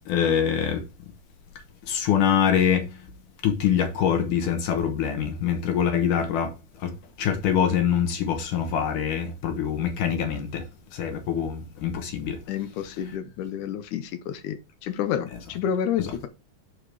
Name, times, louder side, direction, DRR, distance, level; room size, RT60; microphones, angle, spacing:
voice 1, 0.1-0.8 1.9-2.9 3.4-6.5 6.8-6.9 7.2-10.6 11.0-12.4, left 8 dB, 65° left, 2.3 m, -24 dB
voice 2, 12.5-16.3, left 9 dB, 85° left, 1.7 m, -29 dB
6.4 x 5.8 x 4.8 m
omnidirectional pair, 4.7 m